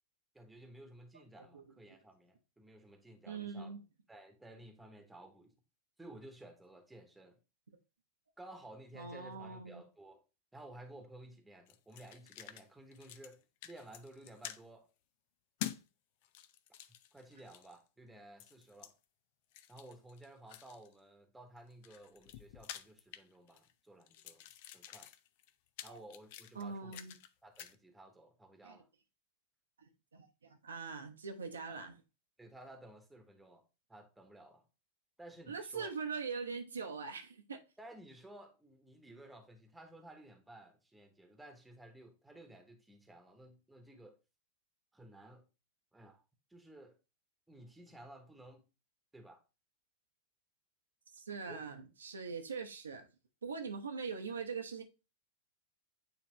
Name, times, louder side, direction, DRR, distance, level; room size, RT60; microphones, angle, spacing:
voice 1, 0.3-3.8 4.1-5.5 6.0-7.4 8.4-10.2 10.5-14.9 17.1-18.9 19.7-24.4 24.7-25.1 25.8-27.0 27.4-28.9 31.6-31.9 32.4-34.6 35.2-35.9 37.8-44.2 44.9-45.5 45.9-46.2 46.5-47.0 47.5-48.7 49.1-49.4 51.5-51.7, right 1 dB, 5° right, 1.2 m, -55 dB
voice 2, 3.3-3.8 8.9-9.8 25.9-26.0 26.5-27.2 28.6-28.8 30.1-31.9 35.5-37.6 51.1-53.1 53.4-54.8, right 5 dB, 70° right, 0.9 m, -42 dB
sound 1, 11.7-12.6 12.9-13.4 13.6-14.6 15.6-15.8 16.2-17.8 18.4-18.9 19.5-20.9 21.6-23.7 24.0-27.3 27.6-27.8, left 12 dB, 50° left, 0.5 m, -48 dB
8.9 x 3.4 x 3.1 m
figure-of-eight pair, 90°, 0 cm